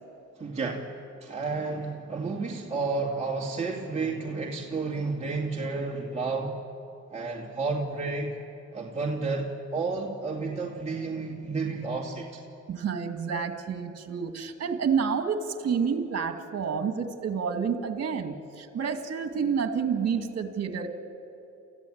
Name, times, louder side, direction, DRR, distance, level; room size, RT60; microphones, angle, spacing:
voice 1, 0.4-0.9 1.2-6.5 7.1-8.4 8.7-12.4, right 3 dB, 20° right, -3 dB, 2.4 m, -31 dB
voice 2, 12.7-20.9, right 6 dB, 55° right, 6 dB, 2.3 m, -29 dB
29.0 x 15.0 x 8.8 m, 2.6 s
cardioid pair, 90°, 30 cm